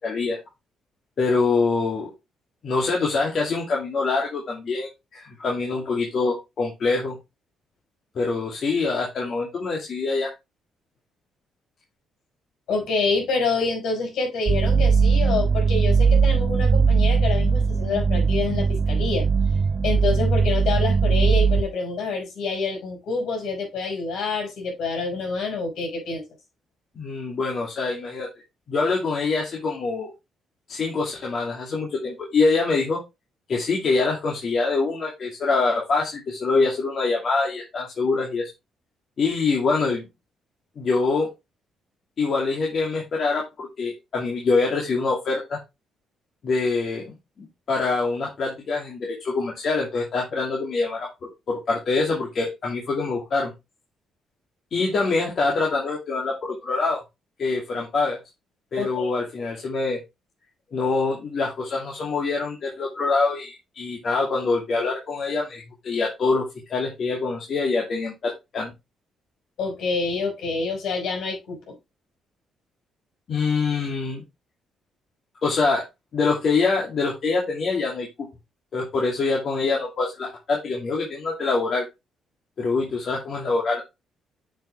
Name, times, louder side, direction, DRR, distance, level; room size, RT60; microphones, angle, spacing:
voice 1, 0.0-0.4 1.2-2.1 2.6-7.2 8.1-10.3 27.0-28.3 28.7-30.1 30.7-33.0 33.5-38.5 39.2-40.0 40.8-41.3 42.2-45.6 46.4-47.1 47.7-53.5 54.7-57.0 57.4-58.2 58.7-60.0 60.7-66.4 66.7-68.7 73.3-74.2 75.4-75.9 76.1-78.3 78.7-81.8 82.6-83.8, left 3 dB, 55° left, 2.5 m, -25 dB
voice 2, 12.7-19.3 19.8-26.2 58.8-59.1 69.6-71.7, left 4 dB, 75° left, 5.4 m, -27 dB
sound 1, 14.5-21.6, right 5 dB, 30° right, 0.5 m, -20 dB
8.8 x 5.6 x 3.4 m
cardioid pair, 90°, 0 cm